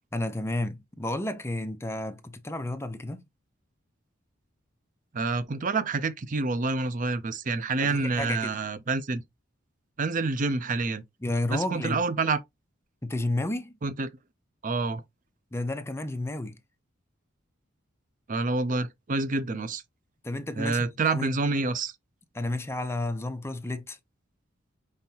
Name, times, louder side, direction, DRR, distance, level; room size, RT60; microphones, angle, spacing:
voice 1, 0.1-3.2 7.8-8.5 11.2-12.0 13.0-13.8 15.5-16.6 20.2-21.3 22.3-24.0, left 1 dB, 15° left, 0.5 m, -31 dB
voice 2, 5.1-9.2 10.0-11.0 11.5-12.4 13.8-14.1 14.6-15.0 18.3-19.8 20.6-21.9, right 3 dB, 40° right, 0.5 m, -28 dB
5.4 x 3.3 x 2.8 m
head